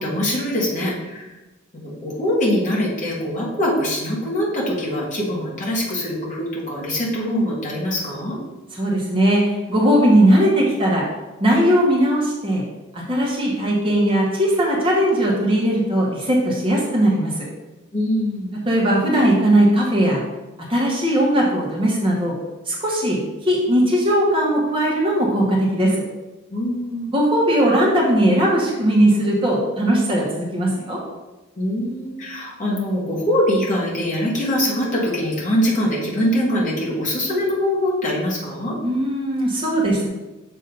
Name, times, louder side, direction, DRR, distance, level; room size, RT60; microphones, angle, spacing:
voice 1, 0.0-1.3 1.7-8.4 17.9-18.6 26.5-27.2 31.6-38.8, equal, 35° left, -5 dB, 1.5 m, -23 dB
voice 2, 8.7-11.1 11.4-12.6 12.9-17.5 18.6-20.2 20.7-22.3 22.7-26.0 27.1-31.0 38.8-40.1, right 1 dB, 25° right, -3 dB, 1.1 m, -18 dB
6.7 x 2.7 x 5.1 m, 1.1 s
head